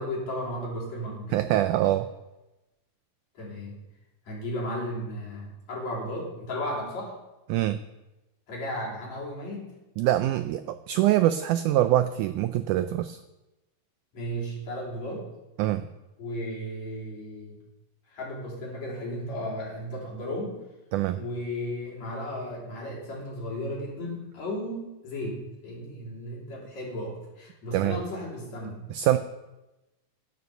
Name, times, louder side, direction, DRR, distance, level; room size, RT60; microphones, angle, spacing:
voice 1, 0.0-1.4 3.3-3.8 4.2-7.2 8.5-9.8 14.1-15.3 16.2-17.6 18.1-20.6 21.2-28.9, equal, 50° left, -5 dB, 4.7 m, -34 dB
voice 2, 1.3-2.1 7.5-7.8 10.0-13.2 15.6-15.9 20.9-21.2 27.7-28.0 28.9-29.2, right 13 dB, 85° right, 11 dB, 1.7 m, -24 dB
11.0 x 9.4 x 6.8 m, 1.0 s
omnidirectional pair, 4.1 m